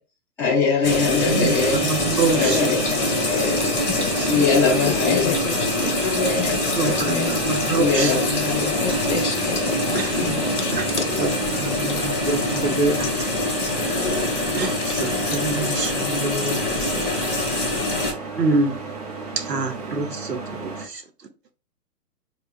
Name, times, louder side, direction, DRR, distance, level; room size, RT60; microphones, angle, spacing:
voice 1, 0.4-1.9 2.3-3.0 3.3-3.7 4.3-5.4 6.0-7.3 7.7-8.7, left 5 dB, 5° left, 0.8 m, -22 dB
sound 1, 0.8-18.1, left 1 dB, 25° left, 1.4 m, -24 dB
voice 2, 1.2-1.6 1.8-2.6 3.1-3.2 4.2-4.3 6.8-8.1 8.6-9.0 9.9-10.4 10.7-10.8 11.2-13.1 14.5-17.0 18.4-18.9 19.4-21.0, right 3 dB, 80° right, 0.9 m, -26 dB
sound 2, 1.5-20.9, right 3 dB, 25° right, 0.6 m, -34 dB
voice 3, 4.0-4.6 4.8-6.0 7.2-7.4 7.8-8.3 8.8-11.4 11.7-12.3 13.9-15.0, left 5 dB, 50° left, 0.5 m, -31 dB
4.5 x 2.3 x 2.5 m
figure-of-eight pair, 130°, 49 cm